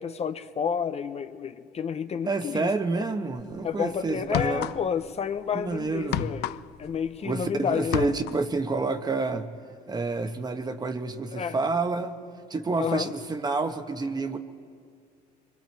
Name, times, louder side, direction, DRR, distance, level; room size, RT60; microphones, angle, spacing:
voice 1, 0.0-2.7 3.6-8.1 11.3-11.6 12.8-13.1, left 7 dB, 40° left, 10 dB, 0.7 m, -30 dB
voice 2, 2.3-4.7 5.5-6.3 7.2-9.5 9.9-12.2 12.5-14.4, right 3 dB, 25° right, 8 dB, 1.1 m, -29 dB
sound 1, 3.4-3.6 4.2-5.1 5.4-7.5 7.8-8.5, left 15 dB, 80° left, 0.4 m, -32 dB
25.0 x 22.5 x 4.6 m, 2.2 s
cardioid pair, 110°, 17 cm